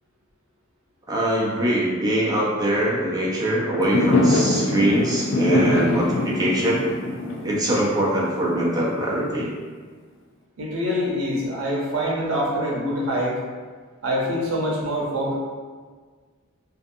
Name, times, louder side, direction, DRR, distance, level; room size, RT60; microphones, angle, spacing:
voice 1, 1.1-6.8 7.4-9.5, right 1 dB, 20° right, -5 dB, 0.5 m, -22 dB
Fireworks, 3.8-9.0, left 2 dB, 65° left, 0.3 m, -23 dB
voice 2, 10.6-13.4 14.0-15.4, equal, 85° right, -4 dB, 0.7 m, -25 dB
2.5 x 2.4 x 2.6 m, 1.5 s
head